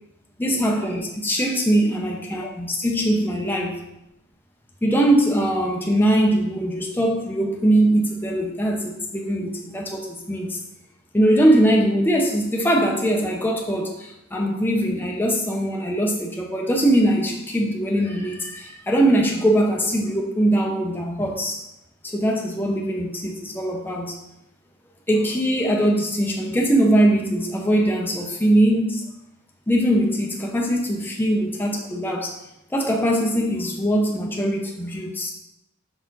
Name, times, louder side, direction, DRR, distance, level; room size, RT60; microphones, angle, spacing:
voice 1, 0.4-3.8 4.8-10.6 11.1-21.6 22.0-24.1 25.1-29.0 29.7-32.4 32.7-35.3, right 1 dB, 10° left, 0 dB, 0.6 m, -21 dB
5.7 x 4.3 x 3.9 m, 0.85 s
head